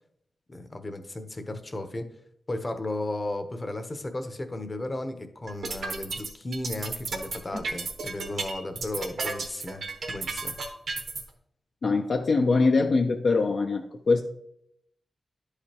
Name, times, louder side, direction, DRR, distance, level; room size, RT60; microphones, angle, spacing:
voice 1, 0.5-2.1 2.5-10.5, left 2 dB, 25° left, 8 dB, 0.8 m, -35 dB
sound 1, 5.5-11.2, right 4 dB, 80° right, 1.0 m, -33 dB
voice 2, 11.8-14.2, left 3 dB, 60° left, 3 dB, 0.5 m, -23 dB
11.0 x 4.9 x 2.9 m, 0.73 s
wide cardioid pair, 120°, 0 cm